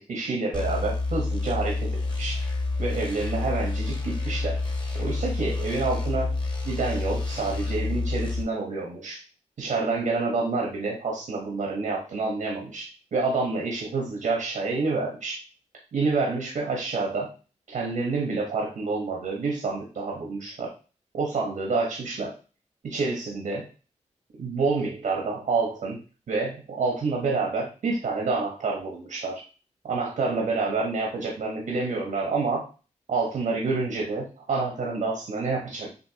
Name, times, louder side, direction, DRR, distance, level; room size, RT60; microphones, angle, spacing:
voice 1, 0.0-2.4 2.8-4.6 5.0-6.3 6.6-9.2 9.6-15.4 15.9-17.3 17.7-20.7 21.1-22.3 22.8-23.7 24.4-26.0 26.3-29.4 29.8-32.7 33.1-35.9, right 3 dB, 85° right, -1 dB, 1.3 m, -28 dB
sound 1, 0.5-8.4, left 3 dB, 35° left, 1.4 m, -28 dB
6.8 x 2.7 x 2.9 m, 0.35 s
cardioid pair, 65°, 13 cm